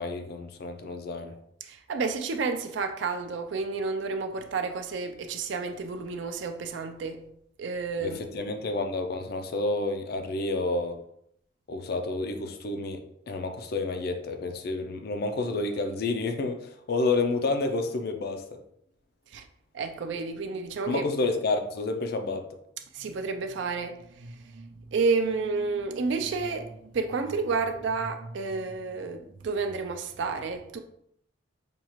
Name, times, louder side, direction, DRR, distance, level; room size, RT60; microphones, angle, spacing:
voice 1, 0.0-1.3 8.0-11.0 11.7-13.0 13.3-18.4 20.9-22.4, left 3 dB, 50° left, 0.4 m, -29 dB
voice 2, 1.6-7.3 7.6-8.2 19.3-19.5 19.7-21.0 22.9-30.8, right 4 dB, 60° right, 0.4 m, -31 dB
5.1 x 2.4 x 3.0 m
head